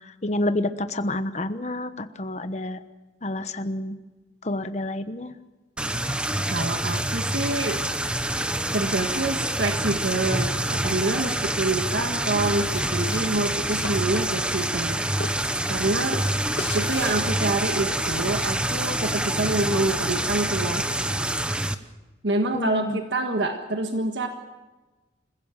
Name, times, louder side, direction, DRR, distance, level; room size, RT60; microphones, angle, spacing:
voice 1, 0.2-2.8 3.2-4.0 4.4-5.3 22.5-23.0, left 1 dB, 40° left, 10 dB, 1.1 m, -28 dB
sound 1, 5.8-21.7, right 1 dB, 5° right, 0.8 m, -26 dB
voice 2, 6.5-7.8 8.7-15.0 15.7-16.2 16.7-21.3 22.2-24.3, right 2 dB, 90° right, 4 dB, 1.7 m, -27 dB
sound 2, 12.2-18.8, left 3 dB, 70° left, 1.8 m, -40 dB
28.0 x 15.5 x 7.3 m, 1.2 s
head